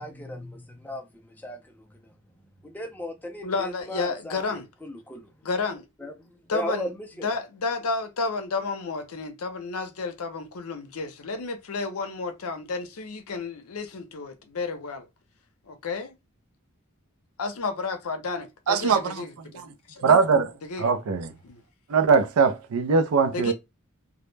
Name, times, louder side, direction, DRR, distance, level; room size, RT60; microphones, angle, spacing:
voice 1, 0.0-2.1 2.6-5.3 6.0-7.4, left 1 dB, 10° left, 0.4 m, -37 dB
voice 2, 3.4-4.7 5.4-5.9 6.5-6.9 7.2-15.1 15.7-16.2 17.4-20.0 20.6-21.0 21.4-21.6 23.3-23.5, left 3 dB, 75° left, 0.6 m, -31 dB
voice 3, 18.7-19.2 20.0-21.3 21.9-23.5, right 5 dB, 75° right, 0.4 m, -21 dB
2.2 x 2.0 x 3.1 m
head